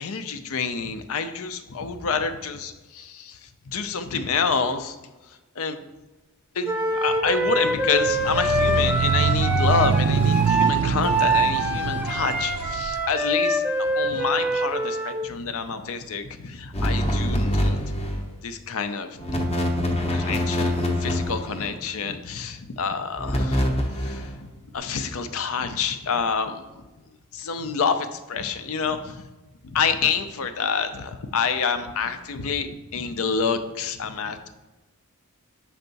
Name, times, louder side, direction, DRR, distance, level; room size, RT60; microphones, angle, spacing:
voice 1, 0.0-5.0 5.3-5.8 6.5-17.8 18.4-19.2 20.1-23.7 24.0-26.8 27.3-29.2 29.6-34.5, left 5 dB, 65° left, 9 dB, 0.5 m, -28 dB
Wind instrument woodwind instrument, 6.6-15.2, right 1 dB, 5° right, 0.6 m, -24 dB
sound 1, 8.0-13.0, right 5 dB, 70° right, 0.4 m, -24 dB
sound 2, 16.7-18.3 19.2-21.8 23.2-24.3, left 1 dB, 30° left, 0.8 m, -25 dB
6.5 x 4.6 x 4.0 m, 1.1 s
head